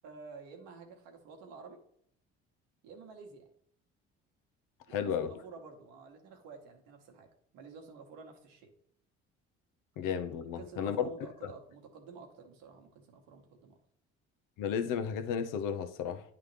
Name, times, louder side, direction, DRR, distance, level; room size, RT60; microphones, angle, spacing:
voice 1, 0.0-1.8 2.8-3.5 4.9-8.7 10.6-13.8, right 4 dB, 75° right, 1.4 m, -50 dB
voice 2, 4.9-5.3 10.0-11.1 11.4-11.5 14.6-16.2, left 7 dB, 70° left, 0.8 m, -33 dB
10.0 x 3.6 x 3.3 m
hypercardioid pair, 55°, 34 cm